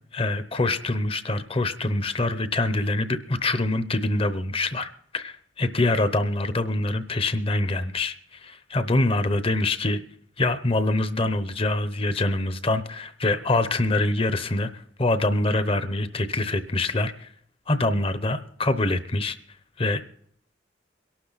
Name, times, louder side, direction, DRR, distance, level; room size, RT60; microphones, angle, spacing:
voice 1, 0.1-10.0 10.4-14.7 15.0-17.3 17.7-19.4 19.8-20.0, left 2 dB, 30° left, 12 dB, 0.8 m, -25 dB
22.0 x 12.0 x 4.1 m, 0.64 s
head